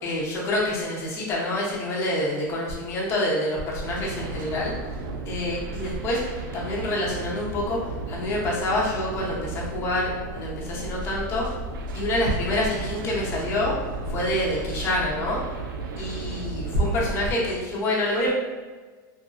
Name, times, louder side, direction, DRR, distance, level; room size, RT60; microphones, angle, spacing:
voice 1, 0.0-4.7 5.3-7.8 8.1-11.5 11.9-13.7 14.1-15.4 16.0-18.3, left 1 dB, 25° left, -5 dB, 0.7 m, -27 dB
sound 1, 3.9-17.2, right 3 dB, 75° right, 0.4 m, -34 dB
3.1 x 2.5 x 2.4 m, 1.4 s
supercardioid pair, 165°, 11 cm